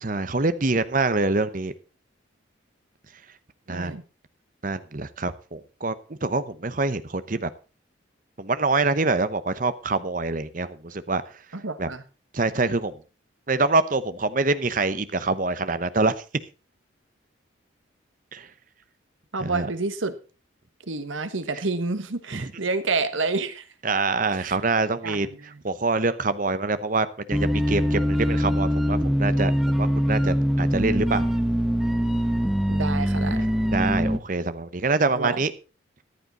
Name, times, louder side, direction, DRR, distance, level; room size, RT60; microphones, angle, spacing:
voice 1, 0.0-1.7 3.7-3.9 4.6-7.5 8.4-11.2 11.8-11.9 12.3-12.9 13.5-16.1 18.3-18.4 19.4-19.7 22.3-22.5 23.8-25.3 25.6-31.3 33.7-35.5, right 3 dB, 40° right, 13 dB, 0.9 m, -25 dB
voice 2, 3.7-4.0 11.5-12.0 19.3-20.1 20.9-23.7 24.4-24.6 25.0-25.6 32.7-33.5 35.1-35.4, right 3 dB, 80° right, 10 dB, 1.4 m, -29 dB
sound 1, 27.3-34.2, equal, ahead, 1.1 m, -23 dB
14.0 x 11.0 x 4.1 m, 0.33 s
head